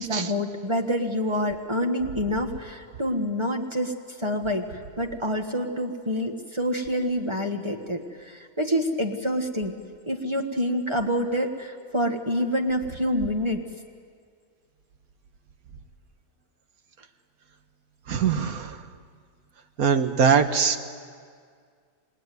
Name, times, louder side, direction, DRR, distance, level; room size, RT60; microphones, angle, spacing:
voice 1, 0.0-3.9 4.2-9.7 10.1-13.6, equal, 20° right, 3 dB, 1.4 m, -27 dB
voice 2, 18.1-18.7 19.8-20.8, right 6 dB, 75° right, 8 dB, 1.6 m, -22 dB
28.0 x 20.0 x 9.4 m, 2.1 s
omnidirectional pair, 1.6 m